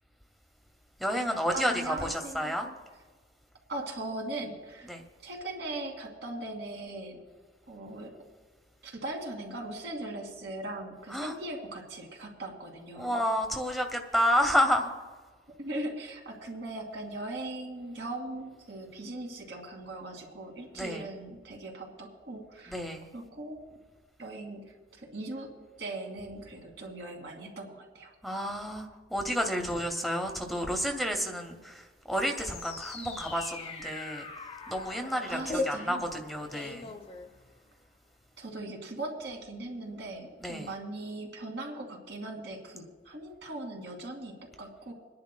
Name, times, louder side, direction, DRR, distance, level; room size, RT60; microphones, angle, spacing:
voice 1, 1.0-2.7 4.9-5.0 11.1-11.4 13.0-14.9 20.7-21.1 22.7-23.1 28.2-34.3 34.7-36.9 40.4-40.7, equal, ahead, 3 dB, 0.8 m, -30 dB
voice 2, 1.5-2.7 3.7-4.9 5.2-7.2 7.7-8.1 8.8-13.2 15.6-22.8 23.1-23.6 24.2-25.5 25.8-28.1 35.3-36.1 38.4-44.9, right 2 dB, 75° right, 1 dB, 2.4 m, -39 dB
sound 1, 32.1-37.8, left 3 dB, 35° left, 0.7 m, -40 dB
27.0 x 10.5 x 2.2 m, 1.4 s
head